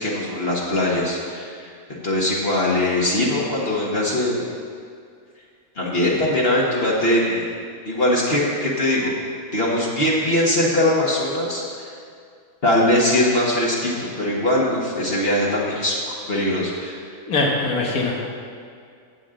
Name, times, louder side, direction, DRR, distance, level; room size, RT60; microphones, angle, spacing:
voice 1, 0.0-1.7 2.0-4.4 5.7-7.5 7.8-9.1 9.5-11.9 12.6-17.0, left 1 dB, 45° left, -5 dB, 1.6 m, -21 dB
voice 2, 17.3-18.2, left 3 dB, 85° left, -1 dB, 2.0 m, -22 dB
14.5 x 8.4 x 3.8 m, 2.2 s
omnidirectional pair, 1.5 m